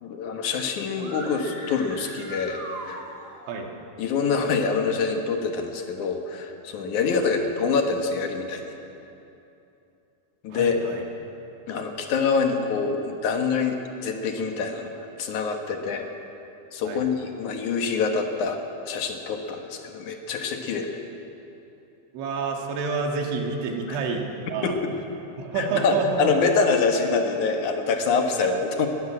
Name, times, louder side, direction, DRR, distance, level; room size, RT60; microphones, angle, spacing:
voice 1, 0.0-3.0 4.0-8.6 10.4-10.8 11.7-16.1 16.7-18.6 18.9-21.0 23.9-24.0 24.6-24.9 25.6-28.9, left 5 dB, 65° left, 3 dB, 2.0 m, -25 dB
sound 1, 0.9-3.5, right 2 dB, 40° right, 2.4 m, -39 dB
voice 2, 10.5-11.1 16.9-17.0 22.1-24.8 25.4-26.4 28.4-28.5, right 4 dB, 75° right, 1 dB, 4.2 m, -28 dB
21.0 x 18.5 x 7.6 m, 2.9 s
omnidirectional pair, 5.5 m